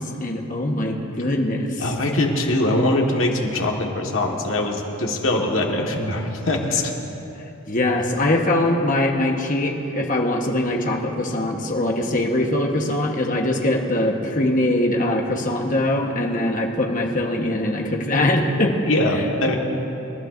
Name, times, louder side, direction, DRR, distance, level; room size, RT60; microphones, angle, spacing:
voice 1, 0.0-1.9 7.7-18.7, left 1 dB, 40° left, 1 dB, 1.2 m, -22 dB
voice 2, 1.8-6.9 18.9-19.6, left 1 dB, 70° left, 0 dB, 1.6 m, -22 dB
27.5 x 12.0 x 2.6 m, 3.0 s
head